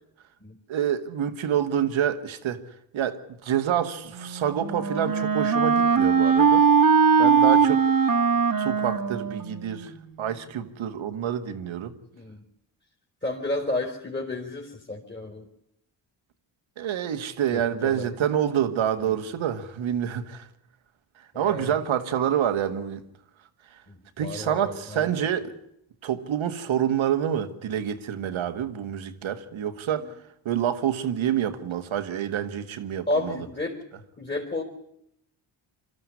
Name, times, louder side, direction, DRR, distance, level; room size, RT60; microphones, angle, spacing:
voice 1, 0.7-2.6 2.9-6.7 7.2-7.9 8.6-12.0 16.8-20.5 21.2-23.0 23.7-23.8 24.2-25.5 26.0-30.1 30.5-33.4, right 9 dB, 70° right, 1.9 m, -27 dB
Wind instrument woodwind instrument, 4.1-9.9, right 6 dB, 40° right, 2.0 m, -21 dB
voice 2, 13.2-15.5 17.5-18.1 19.0-19.3 21.3-21.8 23.9-25.1 29.9-30.1 33.1-33.8 34.2-34.6, left 2 dB, 20° left, 4.5 m, -32 dB
24.0 x 13.0 x 9.9 m
supercardioid pair, 50°, 49 cm